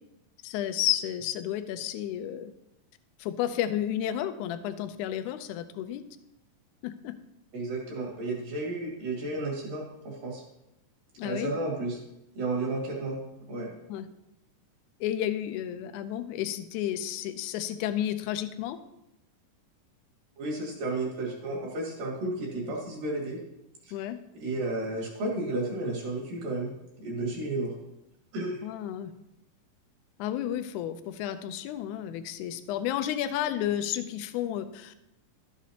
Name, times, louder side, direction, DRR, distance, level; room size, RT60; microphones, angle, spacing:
voice 1, 0.4-2.5 3.2-6.0 6.8-7.1 11.2-11.5 13.9-14.1 15.0-18.8 23.9-24.2 28.6-29.1 30.2-35.1, left 11 dB, 85° left, 10 dB, 1.7 m, -32 dB
voice 2, 7.5-10.4 11.2-12.0 12.4-13.2 13.5-13.8 20.4-23.4 24.4-26.7 27.0-27.7 28.3-28.6, right 2 dB, 70° right, -2 dB, 3.7 m, -32 dB
12.5 x 7.2 x 2.8 m, 0.87 s
omnidirectional pair, 4.0 m